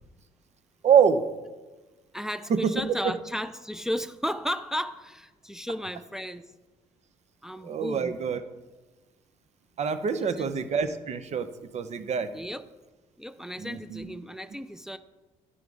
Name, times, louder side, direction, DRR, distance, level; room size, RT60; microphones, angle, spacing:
voice 1, 0.8-1.2 2.5-2.7 3.0-3.1 7.6-8.4 9.8-11.5 11.7-12.3 13.6-14.1, right 7 dB, 50° right, 10 dB, 0.8 m, -25 dB
voice 2, 2.1-6.5 7.4-8.1 10.2-10.5 12.3-12.6 13.2-15.0, equal, 5° right, 9 dB, 0.5 m, -34 dB
10.0 x 4.7 x 5.4 m, 1.2 s
supercardioid pair, 65°, 14 cm